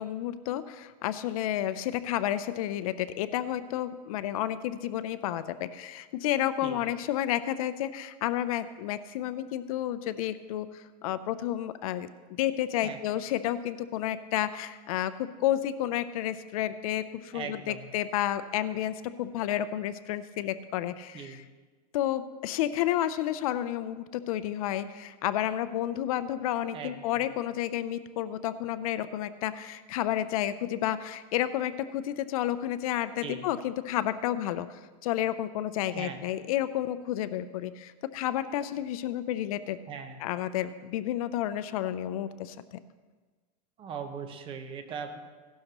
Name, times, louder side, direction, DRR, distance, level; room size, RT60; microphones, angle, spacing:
voice 1, 0.0-21.4 21.9-39.8 40.2-42.6, left 12 dB, 60° left, 13 dB, 0.6 m, -31 dB
voice 2, 17.3-17.8 21.1-21.4 26.7-27.2 33.2-33.5 35.9-36.2 39.9-40.2 43.8-45.2, right 6 dB, 25° right, 7 dB, 1.1 m, -39 dB
16.5 x 12.0 x 3.0 m, 1.4 s
supercardioid pair, 150°, 21 cm